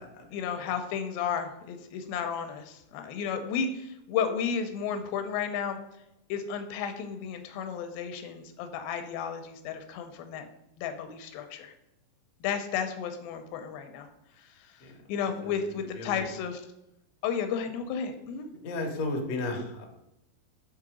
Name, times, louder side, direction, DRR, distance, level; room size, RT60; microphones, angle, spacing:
voice 1, 0.3-5.8 6.3-10.5 10.8-11.7 12.4-14.1 14.4-14.8 15.1-16.6 17.2-18.5, left 7 dB, 85° left, 7 dB, 2.4 m, -33 dB
voice 2, 16.0-16.3 18.6-19.9, left 2 dB, 65° left, 2 dB, 1.7 m, -33 dB
6.0 x 3.8 x 4.8 m, 0.85 s
omnidirectional pair, 4.2 m